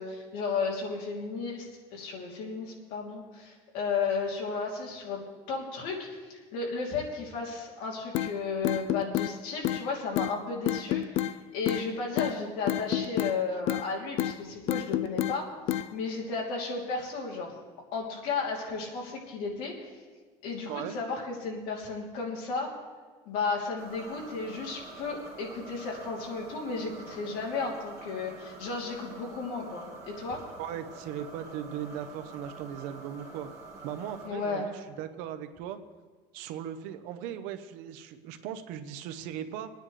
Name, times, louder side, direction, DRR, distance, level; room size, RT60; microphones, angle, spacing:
voice 1, 0.0-5.2 5.5-11.3 11.5-17.5 17.9-19.7 20.4-22.7 23.2-30.4 34.2-34.7, left 4 dB, 70° left, -2 dB, 3.1 m, -34 dB
sound 1, 8.1-8.3 8.6-9.3 9.6-9.8 10.2-10.3 10.7-11.3 11.7-11.9 12.2-12.3 12.7-13.4 13.7-13.9 14.2-14.4 14.7-15.4 15.7-15.9, left 13 dB, 50° left, 0.4 m, -28 dB
sound 2, 23.8-34.3, right 2 dB, 25° right, 2.3 m, -47 dB
voice 2, 30.6-33.5 33.8-35.8 36.3-39.7, right 10 dB, 80° right, 9 dB, 0.9 m, -38 dB
24.5 x 9.7 x 3.3 m, 1.4 s
cardioid pair, 180°, 13 cm